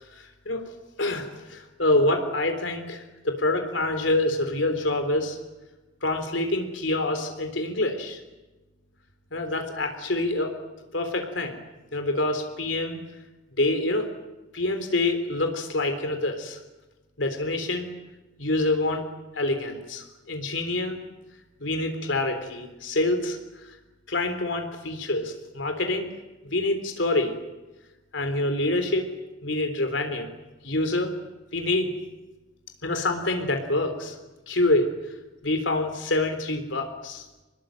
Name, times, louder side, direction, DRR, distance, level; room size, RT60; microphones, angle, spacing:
voice 1, 0.1-0.6 1.0-5.4 6.0-8.2 9.3-10.5 10.9-11.6 11.9-13.0 13.6-14.1 14.5-16.6 17.2-17.9 18.4-19.1 19.3-21.0 21.6-23.7 24.1-26.1 26.4-27.3 28.1-29.1 29.4-30.3 30.6-31.1 31.5-31.9 32.8-34.2 34.5-34.9 35.4-37.3, left 2 dB, 70° left, 6 dB, 3.7 m, -26 dB
26.5 x 21.0 x 9.2 m, 1.1 s
head